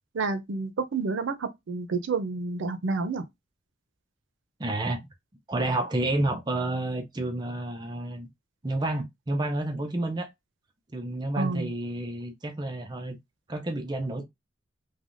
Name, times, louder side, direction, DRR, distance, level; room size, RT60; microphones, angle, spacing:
voice 1, 0.1-3.3 11.4-11.7, right 4 dB, 90° right, 0.5 m, -29 dB
voice 2, 4.6-5.0 5.5-8.3 8.6-10.3 10.9-13.2 13.5-14.2, right 2 dB, 20° right, 0.5 m, -30 dB
3.3 x 2.2 x 2.5 m
head